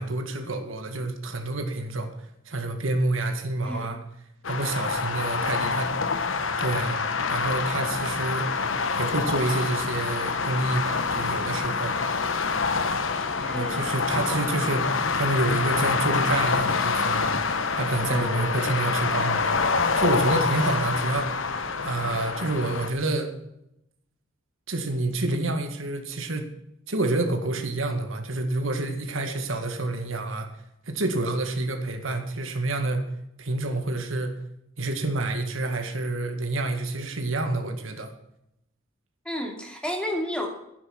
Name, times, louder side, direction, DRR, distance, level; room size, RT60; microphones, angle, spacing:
voice 1, 0.0-2.1 2.5-4.0 4.5-6.3 6.6-7.0 7.3-8.6 8.9-12.0 13.5-17.4 17.8-19.6 19.9-21.4 21.8-23.3 24.7-26.5 26.9-30.5 30.9-33.1 33.4-34.4 34.8-38.1, right 2 dB, 75° right, 5 dB, 2.0 m, -28 dB
sound 1, 4.4-22.9, left 4 dB, 70° left, 1.1 m, -26 dB
voice 2, 5.4-5.7 13.3-13.9 14.3-14.6 18.1-18.5 39.2-40.5, left 1 dB, 5° left, 1 dB, 2.5 m, -33 dB
12.0 x 9.7 x 6.1 m, 0.80 s
head